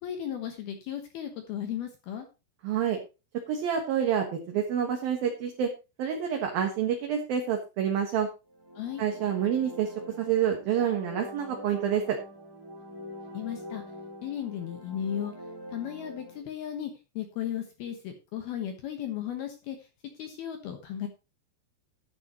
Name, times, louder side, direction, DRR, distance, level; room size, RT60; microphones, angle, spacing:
voice 1, 0.0-2.3 8.8-9.0 13.3-13.8 14.2-15.3 15.7-19.9 20.2-21.1, left 10 dB, 65° left, 5 dB, 2.8 m, -35 dB
voice 2, 2.6-3.0 3.5-5.7 6.0-8.3 9.0-12.2, right 8 dB, 60° right, 3 dB, 2.8 m, -28 dB
sound 1, 8.5-16.4, equal, 5° right, 2.5 m, -44 dB
12.5 x 11.0 x 3.0 m, 0.28 s
omnidirectional pair, 5.5 m